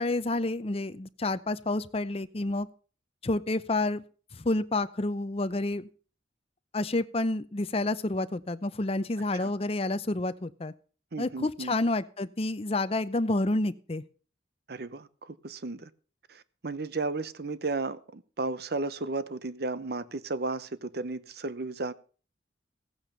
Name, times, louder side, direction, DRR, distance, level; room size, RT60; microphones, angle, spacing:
voice 1, 0.0-2.7 3.2-4.0 4.3-5.9 6.7-10.7 11.2-14.0, left 2 dB, 30° left, 13 dB, 0.6 m, -29 dB
voice 2, 11.1-11.7 14.7-15.9 16.3-21.9, right 3 dB, 55° right, 16 dB, 0.8 m, -34 dB
15.5 x 8.8 x 5.4 m, 0.39 s
head